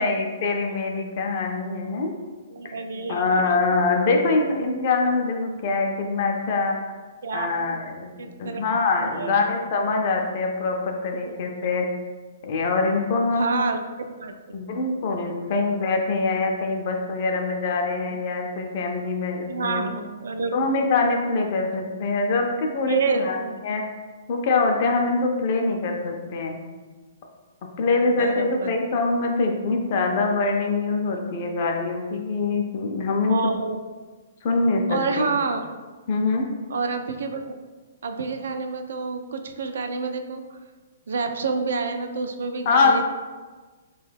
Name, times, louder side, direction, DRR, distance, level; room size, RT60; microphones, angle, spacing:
voice 1, 0.0-2.1 3.1-6.8 7.3-11.8 12.4-13.6 14.5-19.9 20.5-23.4 23.6-23.8 24.3-26.6 27.8-33.5 34.4-35.3 36.1-36.5 42.7-43.0, left 3 dB, 40° left, 2 dB, 0.4 m, -24 dB
voice 2, 2.5-3.3 4.3-4.4 7.2-7.8 8.2-8.6 9.0-9.4 11.2-11.3 13.4-13.8 14.2-14.5 19.5-20.7 22.8-23.6 27.9-28.8 33.3-33.8 34.9-35.7 36.7-37.4 38.0-40.4 41.1-43.0, right 4 dB, 75° right, 6 dB, 0.3 m, -28 dB
3.4 x 2.3 x 3.3 m, 1.3 s
hypercardioid pair, 165°, 0 cm